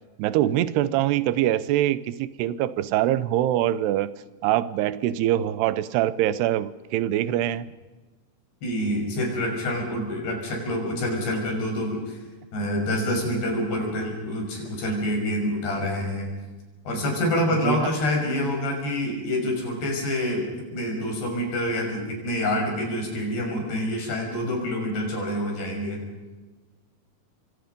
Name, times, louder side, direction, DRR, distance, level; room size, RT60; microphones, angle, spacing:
voice 1, 0.2-4.1 4.4-7.7 17.5-17.9, right 13 dB, 85° right, 16 dB, 2.9 m, -24 dB
voice 2, 8.6-12.2 12.5-16.3 16.9-26.0, left 1 dB, 85° left, 1 dB, 8.2 m, -27 dB
27.5 x 24.0 x 5.3 m, 1.2 s
omnidirectional pair, 4.6 m